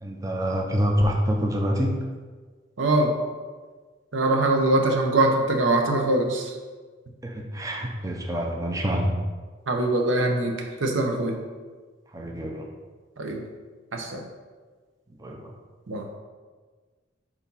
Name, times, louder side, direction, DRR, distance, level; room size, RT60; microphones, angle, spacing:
voice 1, 0.0-2.0 7.2-9.2 12.1-12.7 15.2-15.5, equal, 15° right, 1 dB, 0.6 m, -26 dB
voice 2, 2.8-3.2 4.1-6.5 9.7-11.4 13.2-13.4 13.9-14.2 15.9-16.1, right 2 dB, 85° right, 3 dB, 0.8 m, -23 dB
4.6 x 4.3 x 5.4 m, 1.4 s
head